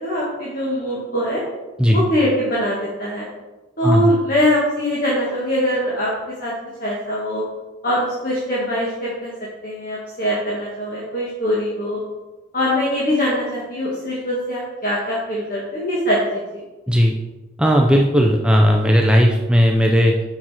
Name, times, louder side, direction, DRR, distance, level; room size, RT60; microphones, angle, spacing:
voice 1, 0.0-1.4 1.9-3.2 3.8-6.1 6.4-6.5 6.8-7.4 7.8-9.3 9.6-12.0 12.5-16.6, equal, 45° left, -6 dB, 1.6 m, -22 dB
voice 2, 17.6-20.2, equal, 5° right, 1 dB, 0.5 m, -15 dB
7.4 x 6.0 x 4.2 m, 1.1 s
head